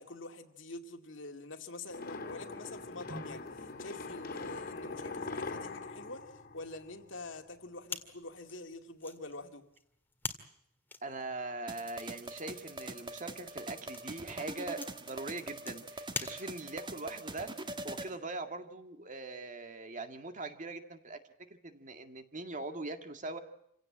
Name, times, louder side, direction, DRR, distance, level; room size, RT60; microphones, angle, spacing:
voice 1, 0.0-3.5 3.8-9.7, left 2 dB, 65° left, 2.4 m, -46 dB
sound 1, 1.9-7.2, left 3 dB, 50° left, 2.5 m, -42 dB
sound 2, 7.9-16.9, left 3 dB, 10° left, 1.9 m, -46 dB
voice 2, 11.0-17.5 17.8-21.2 21.5-23.4, right 2 dB, 40° right, 2.1 m, -41 dB
sound 3, 11.7-18.1, right 2 dB, 25° right, 1.8 m, -43 dB
27.5 x 17.0 x 8.7 m
head